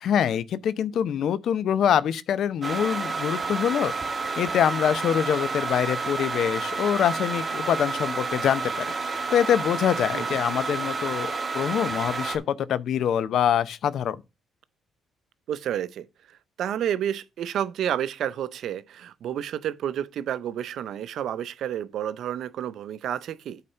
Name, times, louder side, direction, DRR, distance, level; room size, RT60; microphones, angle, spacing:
voice 1, 0.0-3.9 4.4-14.2, left 9 dB, 70° left, 0.6 m, -25 dB
sound 1, 2.6-12.4, right 4 dB, 30° right, 1.6 m, -30 dB
voice 2, 15.5-16.1 16.6-23.6, right 10 dB, 75° right, 0.6 m, -30 dB
8.6 x 4.1 x 5.5 m
cardioid pair, 90°, 0 cm